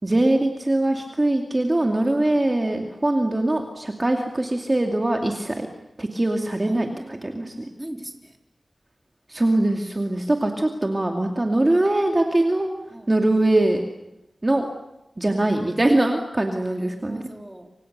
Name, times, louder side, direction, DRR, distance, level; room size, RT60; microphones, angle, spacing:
voice 1, 0.0-5.7 6.0-7.6 9.3-12.7 13.1-13.8 14.4-14.7 15.2-17.3, right 1 dB, 30° right, 2 dB, 2.5 m, -22 dB
voice 2, 2.0-2.6 6.6-8.4 12.9-13.4 15.3-15.7 16.5-17.7, right 1 dB, 15° right, 3 dB, 3.3 m, -42 dB
29.0 x 26.0 x 6.8 m, 0.92 s
wide cardioid pair, 75°, 0 cm